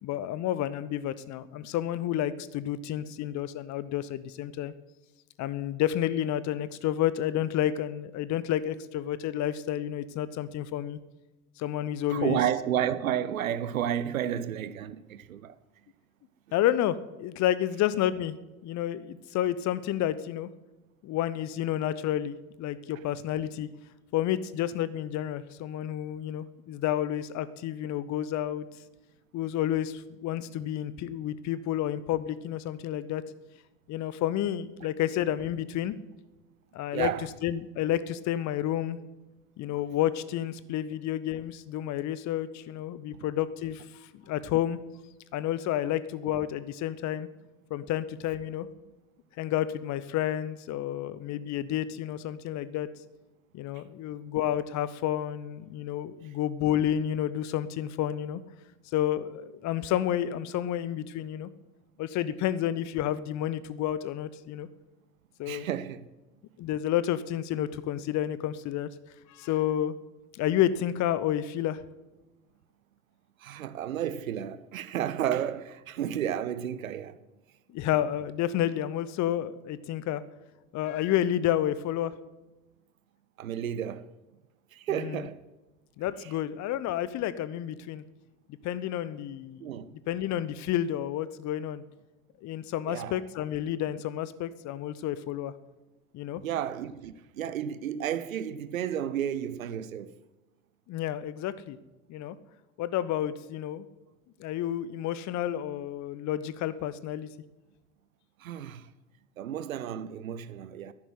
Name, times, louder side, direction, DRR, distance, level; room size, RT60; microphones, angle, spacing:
voice 1, 0.0-4.7 5.4-11.0 11.6-12.4 16.5-18.3 18.6-20.5 21.0-23.7 24.1-28.7 29.3-33.2 33.9-35.9 36.7-37.1 37.4-39.0 39.6-44.8 45.3-47.3 47.7-48.7 49.4-52.9 53.5-58.4 58.9-61.5 62.0-64.7 65.4-65.7 66.6-68.9 69.3-69.9 70.3-71.8 77.7-80.2 80.7-82.1 84.9-85.2 86.0-88.0 88.6-89.6 90.1-91.8 92.4-95.5 96.1-96.4 100.9-101.8 102.1-102.4 102.8-103.9 104.4-107.3, left 11 dB, 45° left, 0.9 m, -30 dB
voice 2, 12.1-15.6 36.9-37.3 53.7-53.8 65.4-66.1 73.4-77.2 83.4-84.1 84.7-85.4 86.2-86.3 89.6-89.9 92.9-93.2 96.4-100.2 108.4-108.9 109.4-110.9, right 10 dB, 75° right, 0.8 m, -32 dB
12.0 x 11.0 x 9.4 m
figure-of-eight pair, 60°, 41 cm